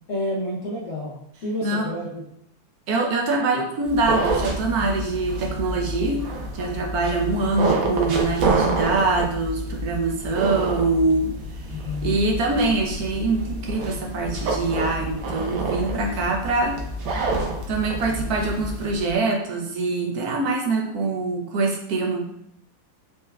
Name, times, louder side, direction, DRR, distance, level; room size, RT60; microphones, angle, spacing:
voice 1, 0.1-2.2 11.8-12.3, left 1 dB, 60° left, -5 dB, 0.8 m, -30 dB
voice 2, 1.6-1.9 2.9-6.3 6.5-16.8 17.7-22.3, right 3 dB, 70° right, 1 dB, 0.9 m, -24 dB
sound 1, 3.8-19.1, right 2 dB, 85° right, 1.5 m, -28 dB
4.3 x 3.4 x 2.2 m, 0.74 s
omnidirectional pair, 2.1 m